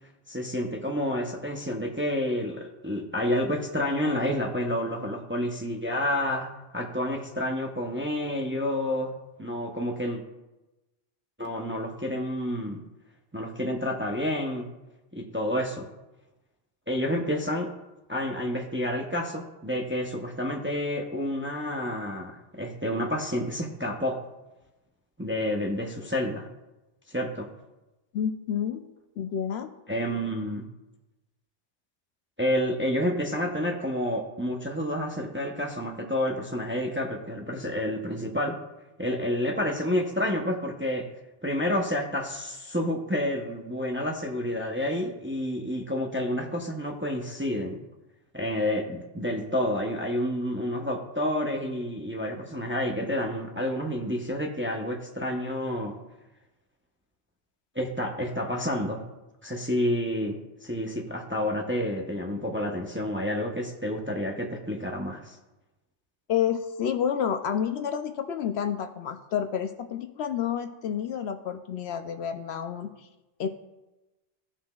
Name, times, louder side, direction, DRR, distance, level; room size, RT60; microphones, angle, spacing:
voice 1, 0.3-9.1 9.4-10.2 11.4-12.8 13.3-14.7 15.1-15.9 16.9-17.7 18.1-24.2 25.2-26.5 27.1-27.5 29.9-30.7 32.4-38.6 39.0-41.1 41.4-47.8 48.3-56.0 57.7-59.0 59.4-65.4, left 1 dB, 15° right, 1 dB, 0.6 m, -29 dB
voice 2, 28.1-29.7 66.3-73.1 73.4-73.5, left 8 dB, 70° left, 8 dB, 0.8 m, -29 dB
15.5 x 5.8 x 2.3 m, 1.0 s
omnidirectional pair, 1.2 m